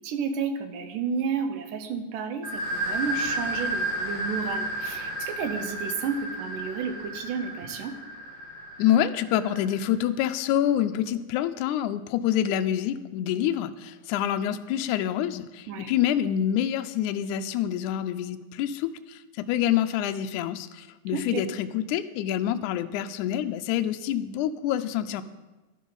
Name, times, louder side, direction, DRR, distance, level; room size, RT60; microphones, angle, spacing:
voice 1, 0.0-8.0 15.7-15.9 21.1-21.4, right 6 dB, 75° right, 8 dB, 2.3 m, -31 dB
sound 1, 2.4-9.9, right 1 dB, 35° right, 5.6 m, -32 dB
voice 2, 8.8-25.2, left 11 dB, 90° left, 9 dB, 1.7 m, -27 dB
11.5 x 11.5 x 4.0 m, 1.1 s
omnidirectional pair, 4.1 m